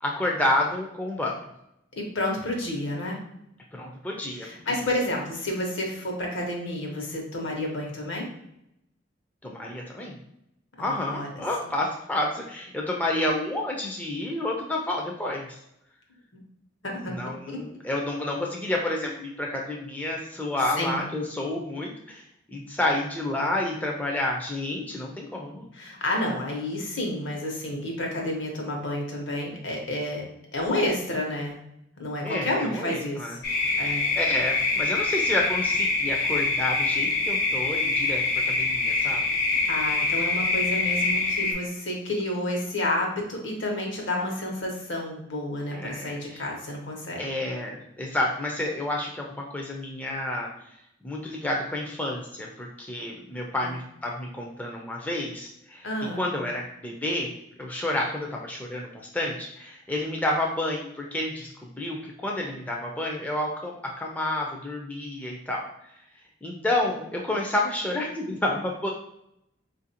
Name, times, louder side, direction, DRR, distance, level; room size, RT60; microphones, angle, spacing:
voice 1, 0.0-1.3 3.7-4.8 9.4-10.1 10.8-15.6 17.1-25.7 32.2-33.4 34.2-39.2 45.7-46.4 47.2-50.5 51.0-55.9 56.1-57.3 57.6-65.6 66.4-68.9, left 1 dB, 10° left, -1 dB, 0.3 m, -30 dB
voice 2, 2.0-3.2 4.3-8.2 10.8-11.3 16.8-17.2 17.5-17.6 20.8-21.0 25.7-30.2 30.5-31.6 32.0-33.4 33.8-34.1 39.7-47.2 53.6-53.7 55.8-56.2, left 1 dB, 75° left, 0 dB, 1.0 m, -30 dB
sound 1, 33.4-41.5, left 3 dB, 50° left, 0.6 m, -25 dB
4.2 x 2.5 x 2.7 m, 0.80 s
head